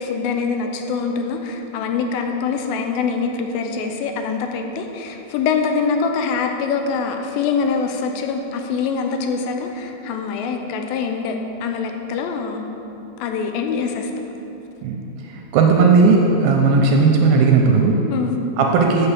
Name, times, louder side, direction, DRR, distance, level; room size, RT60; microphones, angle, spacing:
voice 1, 0.0-12.7 13.2-14.1 18.1-18.4, left 5 dB, 80° left, 4 dB, 2.2 m, -24 dB
voice 2, 15.3-18.0 18.6-19.1, right 4 dB, 80° right, 1 dB, 2.3 m, -15 dB
6.8 x 6.8 x 7.2 m, 3.0 s
omnidirectional pair, 4.7 m